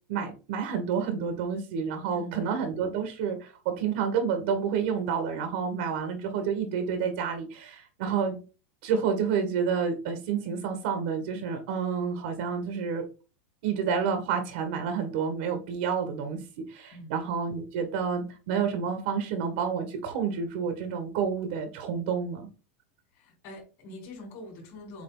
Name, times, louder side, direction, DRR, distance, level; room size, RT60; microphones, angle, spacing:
voice 1, 0.1-8.4 8.8-13.1 13.6-22.5, right 6 dB, 65° right, 7 dB, 1.7 m, -29 dB
voice 2, 23.2-25.0, left 1 dB, 45° left, 1 dB, 3.8 m, -44 dB
7.7 x 3.5 x 3.9 m, 0.33 s
supercardioid pair, 155°, 6 cm